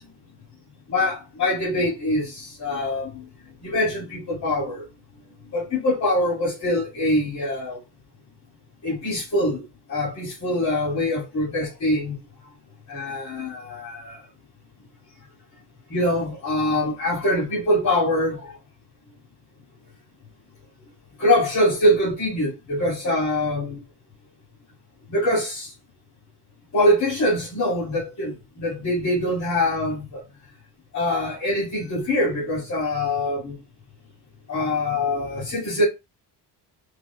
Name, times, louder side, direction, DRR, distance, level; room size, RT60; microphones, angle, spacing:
voice 1, 0.9-3.2 3.6-4.8 5.5-7.8 8.8-9.6 9.9-12.2 12.9-14.2 15.9-18.6 21.2-23.8 25.1-25.7 26.7-30.2 30.9-33.6 34.5-35.8, left 1 dB, 40° left, 2.1 m, -24 dB
4.8 x 2.3 x 2.3 m
cardioid pair, 150°, 43 cm